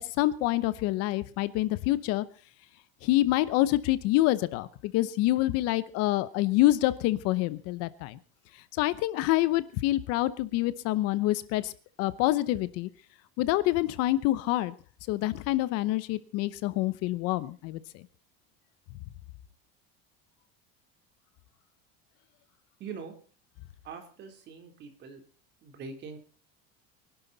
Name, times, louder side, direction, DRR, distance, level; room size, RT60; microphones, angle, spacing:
voice 1, 0.2-2.2 3.0-8.2 8.7-11.7 12.0-12.9 13.4-14.7 15.1-18.0, left 16 dB, 55° left, 15 dB, 0.9 m, -26 dB
voice 2, 22.8-23.1 23.8-25.2 25.6-26.2, right 5 dB, 35° right, 5 dB, 3.5 m, -42 dB
24.0 x 11.5 x 4.0 m, 0.39 s
cardioid pair, 170°, 30 cm